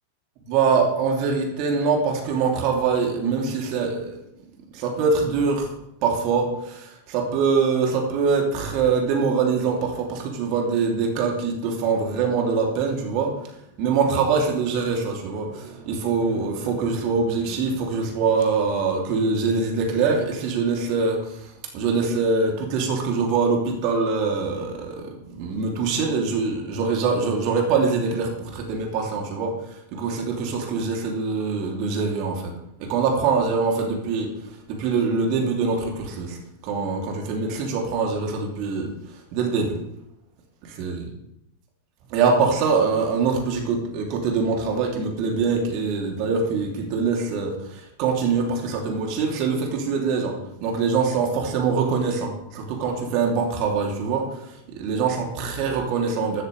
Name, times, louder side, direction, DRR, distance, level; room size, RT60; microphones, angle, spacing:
voice 1, 0.5-4.2 4.7-5.7 6.0-32.5 32.8-36.4 36.6-38.9 39.3-39.8 40.6-41.1 42.1-56.4, right 5 dB, 45° right, 0 dB, 3.5 m, -24 dB
14.0 x 13.0 x 3.6 m, 0.79 s
figure-of-eight pair, 90°, 0 cm